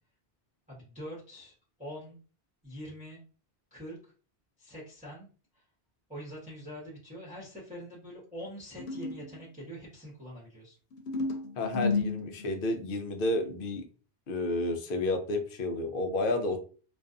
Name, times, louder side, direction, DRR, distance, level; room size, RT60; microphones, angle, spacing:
voice 1, 0.7-2.2 2.6-3.2 3.7-4.1 4.6-5.3 5.5-5.6 6.1-10.8, equal, 10° right, -7 dB, 0.8 m, -44 dB
sound 1, 8.8-9.4 10.9-12.9, left 4 dB, 85° left, 0.9 m, -32 dB
voice 2, 11.6-13.8 14.3-16.6, left 2 dB, 60° left, 5 dB, 0.7 m, -31 dB
2.5 x 2.3 x 2.4 m, 0.38 s
omnidirectional pair, 1.1 m